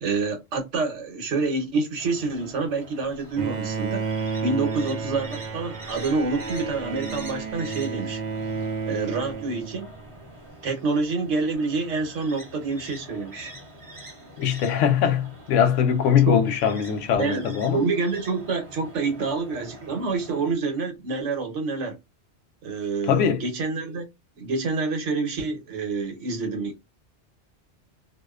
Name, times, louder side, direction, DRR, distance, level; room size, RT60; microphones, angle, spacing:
voice 1, 0.0-4.1 4.4-8.2 8.8-9.9 10.6-13.5 16.3-16.4 17.2-22.0 22.6-24.1 24.4-26.7, right 4 dB, 80° right, 1.2 m, -27 dB
sound 1, 2.0-20.5, right 1 dB, 30° right, 1.0 m, -45 dB
Bowed string instrument, 3.4-10.1, right 5 dB, 60° right, 0.5 m, -31 dB
voice 2, 14.4-17.8 23.1-23.4, left 8 dB, 90° left, 0.9 m, -21 dB
2.5 x 2.1 x 2.3 m
omnidirectional pair, 1.2 m